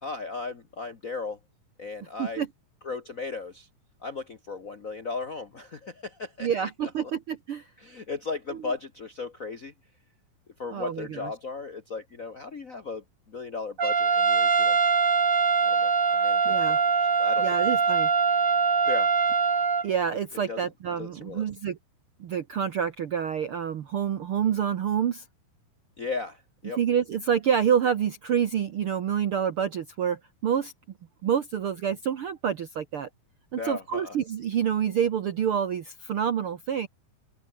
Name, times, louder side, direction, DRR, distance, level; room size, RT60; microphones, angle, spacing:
voice 1, 0.0-1.4 1.8-2.4 2.8-3.7 4.0-6.7 7.8-9.7 10.6-14.8 15.6-17.6 18.8-19.1 20.5-20.6 21.0-21.4 26.0-26.8 33.5-34.2, left 4 dB, 60° left, 0.8 m, -36 dB
voice 2, 6.4-7.7 10.7-11.3 16.4-16.8 17.4-18.1 19.8-21.8 22.2-25.2 26.8-30.7 31.2-33.1 33.5-36.9, right 8 dB, 75° right, 1.2 m, -27 dB
Trumpet, 13.8-19.8, right 5 dB, 30° right, 1.6 m, -23 dB
omnidirectional pair, 4.2 m